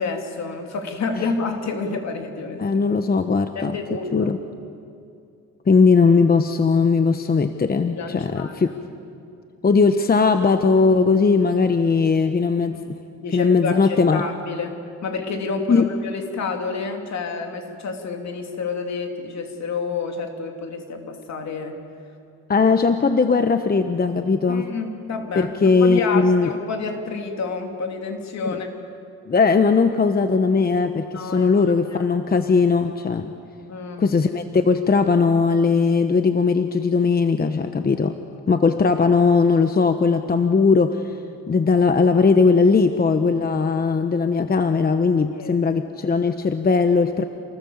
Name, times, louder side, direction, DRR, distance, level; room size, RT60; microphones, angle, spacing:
voice 1, 0.0-2.7 3.5-4.3 7.9-8.7 13.2-21.8 22.6-22.7 24.5-28.7 31.1-31.6 31.9-32.0 33.7-34.1 38.5-38.6 45.3-45.6, left 4 dB, 60° left, 3 dB, 3.2 m, -29 dB
voice 2, 2.6-3.8 4.1-4.4 5.7-8.7 9.6-12.8 13.3-14.2 15.7-15.9 22.5-24.7 25.4-26.5 28.4-28.5 29.3-33.3 34.0-38.1 38.5-41.0 41.5-47.2, left 4 dB, 30° left, 8 dB, 1.1 m, -19 dB
28.5 x 19.0 x 7.3 m, 2.5 s
cardioid pair, 90°, 30 cm